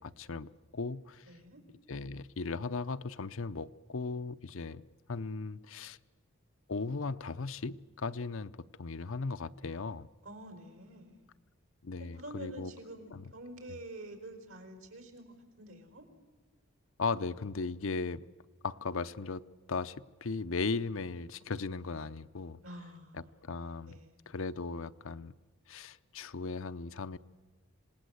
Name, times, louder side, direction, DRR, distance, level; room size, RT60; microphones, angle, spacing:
voice 1, 0.0-1.3 1.9-4.8 5.1-6.0 6.7-8.5 8.8-10.1 11.8-12.7 13.1-13.3 17.0-18.2 18.6-19.4 19.7-22.6 23.1-24.0 24.3-25.3 25.7-27.2, left 4 dB, 65° left, 13 dB, 0.7 m, -37 dB
voice 2, 1.3-1.6 10.2-11.3 12.1-16.0 22.6-23.5 23.9-24.2, right 1 dB, 70° right, 6 dB, 4.5 m, -48 dB
27.0 x 19.0 x 8.0 m, 1.4 s
head